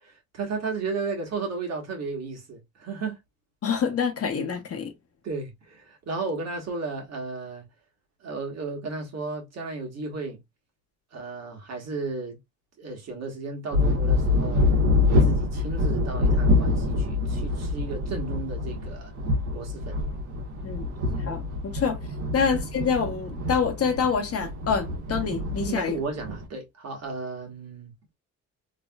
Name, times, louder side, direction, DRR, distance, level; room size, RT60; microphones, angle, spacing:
voice 1, 0.1-3.2 5.2-7.6 8.2-10.4 11.1-12.4 12.8-14.6 15.1-19.1 19.5-20.0 22.3-22.5 25.7-27.9, right 4 dB, 60° right, 1.5 m, -34 dB
voice 2, 3.6-4.9 20.6-20.8 21.2-22.0 22.3-26.0, left 6 dB, 50° left, 1.0 m, -26 dB
sound 1, 13.7-26.5, left 2 dB, 80° right, 1.3 m, -25 dB
3.2 x 2.9 x 2.3 m
cardioid pair, 90°, 30 cm